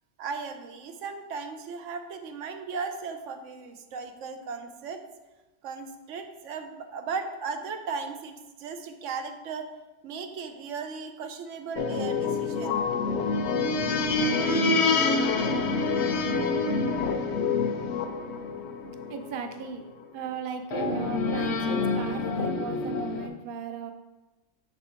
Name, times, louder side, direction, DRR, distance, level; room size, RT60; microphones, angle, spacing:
voice 1, 0.2-5.0 5.6-9.7 10.0-12.8, right 5 dB, 90° right, 6 dB, 1.0 m, -36 dB
sound 1, 11.8-19.6 20.7-23.3, left 4 dB, 70° left, 0.9 m, -27 dB
voice 2, 19.1-19.8 20.1-23.9, right 6 dB, 55° right, 6 dB, 0.7 m, -36 dB
6.6 x 4.2 x 4.4 m, 1.1 s
omnidirectional pair, 1.2 m